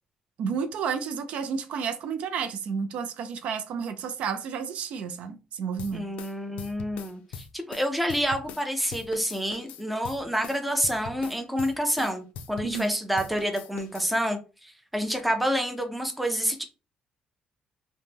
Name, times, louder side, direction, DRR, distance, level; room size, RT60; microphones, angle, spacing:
voice 1, 0.4-6.1 12.6-12.9, right 6 dB, 65° right, 0.4 m, -31 dB
sound 1, 5.8-8.7 8.9-12.9 13.2-14.1, left 6 dB, 85° left, 0.4 m, -42 dB
voice 2, 5.9-16.6, equal, ahead, 0.4 m, -28 dB
3.0 x 2.1 x 3.3 m
cardioid pair, 170°, 2 cm